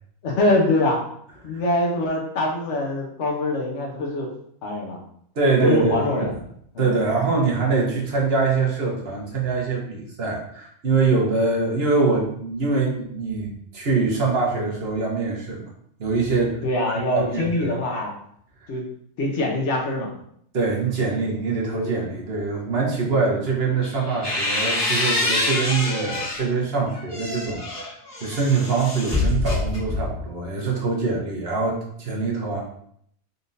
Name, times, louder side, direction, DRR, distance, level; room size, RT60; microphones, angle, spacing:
voice 1, 0.2-1.0 1.4-4.3 4.6-5.0 5.6-6.3 6.7-6.9 16.6-18.1 18.7-18.8 19.2-20.1, left 2 dB, 60° left, 0 dB, 1.2 m, -23 dB
voice 2, 5.4-6.0 6.8-15.6 16.0-16.6 17.1-17.8 20.5-27.9 28.2-32.6, right 4 dB, 50° right, -2 dB, 1.1 m, -23 dB
sound 1, 23.8-26.5 26.9-30.3, left 2 dB, 20° left, 1.1 m, -26 dB
4.1 x 3.4 x 2.6 m, 0.67 s
omnidirectional pair, 1.4 m